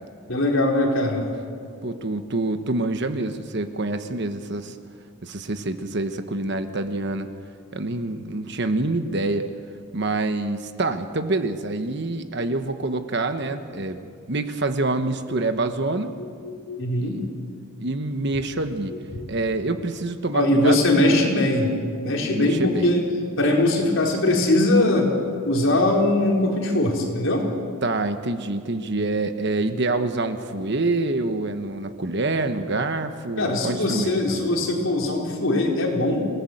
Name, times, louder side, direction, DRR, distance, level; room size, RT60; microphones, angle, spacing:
voice 1, 0.3-1.2 15.3-15.4 16.2-17.3 18.9-19.3 20.3-21.8 22.0-23.0 23.4-25.2 25.4-27.5 33.4-36.2, left 1 dB, 65° left, -1 dB, 4.3 m, -21 dB
voice 2, 1.8-4.8 5.2-7.3 7.7-9.5 9.9-14.0 14.3-16.2 17.0-17.2 17.8-18.9 19.3-21.2 22.3-22.9 27.8-34.5, right 2 dB, 55° right, 8 dB, 1.2 m, -26 dB
28.5 x 18.0 x 8.0 m, 2.2 s
head